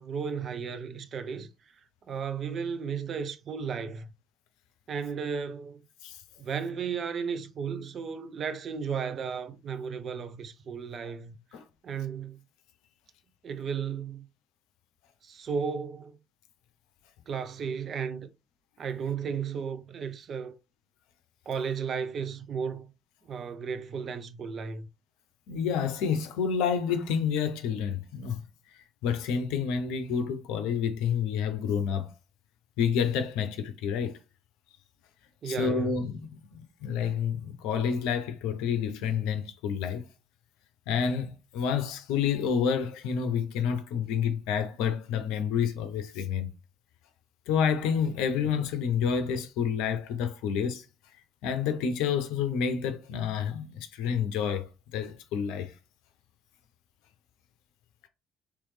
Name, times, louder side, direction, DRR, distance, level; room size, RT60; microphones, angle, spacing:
voice 1, 0.0-1.5 2.1-4.1 4.9-5.8 6.4-11.4 11.8-12.4 13.4-14.3 15.2-16.1 17.3-18.3 18.8-20.6 21.5-22.9 23.2-24.9 35.4-35.9, right 6 dB, 50° right, 0.5 m, -34 dB
voice 2, 25.5-28.5 28.7-32.1 32.8-34.2 35.4-36.2 36.8-40.0 40.9-46.5 47.5-50.9 51.4-55.7, left 7 dB, 70° left, 0.5 m, -29 dB
3.2 x 3.1 x 3.2 m
hypercardioid pair, 50°, 0 cm